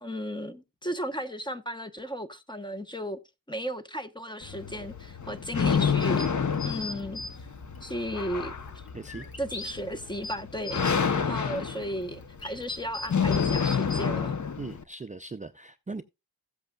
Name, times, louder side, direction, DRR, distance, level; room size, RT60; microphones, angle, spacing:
voice 1, 0.0-3.2 3.5-6.3 6.6-7.2 7.8-8.8 9.4-14.4, equal, 10° left, 0.9 m, -35 dB
sound 1, 4.4-14.8, left 6 dB, 50° left, 0.8 m, -29 dB
sound 2, 5.7-7.3 7.7-7.8 8.6-9.7 10.1-11.0 11.6-14.0, left 3 dB, 65° left, 2.2 m, -39 dB
voice 2, 8.9-9.3 11.1-11.3 14.6-16.0, right 3 dB, 20° right, 0.5 m, -39 dB
15.5 x 7.9 x 2.3 m
wide cardioid pair, 105°, 39 cm